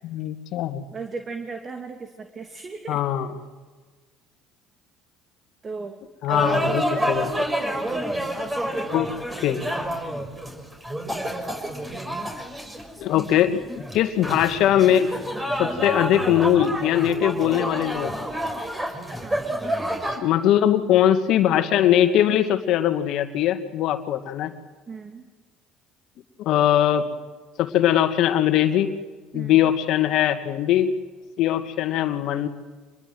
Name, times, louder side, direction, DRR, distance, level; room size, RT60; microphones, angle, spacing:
voice 1, 0.0-0.8 2.9-3.4 6.2-7.3 8.9-9.1 9.4-9.6 13.0-13.6 13.9-15.1 15.6-18.3 20.2-24.5 26.4-27.1 27.6-28.9 29.3-30.9 31.4-32.5, left 11 dB, 60° left, 9 dB, 2.1 m, -21 dB
voice 2, 0.9-3.0 5.6-6.0 6.3-7.1 19.2-20.0 24.9-25.3 29.3-29.7, right 4 dB, 35° right, 5 dB, 2.7 m, -36 dB
sound 1, 6.3-20.2, right 1 dB, 15° right, 6.4 m, -29 dB
27.0 x 22.0 x 8.0 m, 1.4 s
hypercardioid pair, 65°, 0 cm